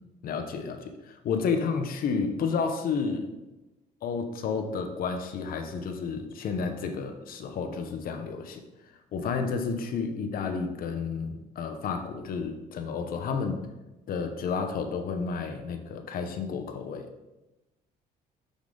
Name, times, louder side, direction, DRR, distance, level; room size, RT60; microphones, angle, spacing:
voice 1, 0.2-3.3 4.0-8.6 9.1-13.6 14.1-17.1, left 5 dB, 60° left, 7 dB, 1.0 m, -31 dB
7.4 x 7.0 x 3.9 m, 1.0 s
cardioid pair, 110°, 17 cm